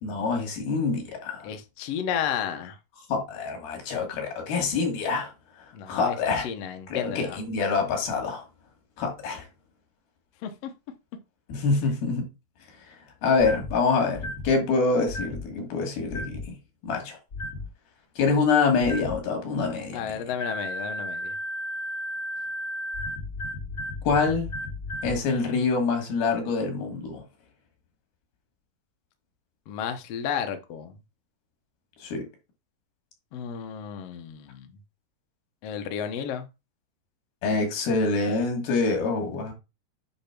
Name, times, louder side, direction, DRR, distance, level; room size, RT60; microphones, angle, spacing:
voice 1, 0.0-1.5 3.1-5.3 5.6-6.4 6.9-8.4 9.0-9.5 11.5-12.3 12.9-13.0 13.2-16.6 16.8-17.2 18.2-20.0 24.0-24.5 25.0-27.2 32.0-32.3 37.4-39.5, left 4 dB, 85° left, 4.2 m, -26 dB
voice 2, 1.4-2.8 5.7-7.4 10.4-10.7 19.9-21.4 29.7-31.0 33.3-34.8 35.6-36.5, left 8 dB, 65° left, 1.6 m, -32 dB
sound 1, 13.4-13.8 14.1-14.5 15.1-15.4 16.1-16.5 17.3-17.7 18.8-19.2 20.4-25.2, left 1 dB, 30° left, 2.5 m, -34 dB
8.6 x 3.4 x 6.0 m
omnidirectional pair, 4.2 m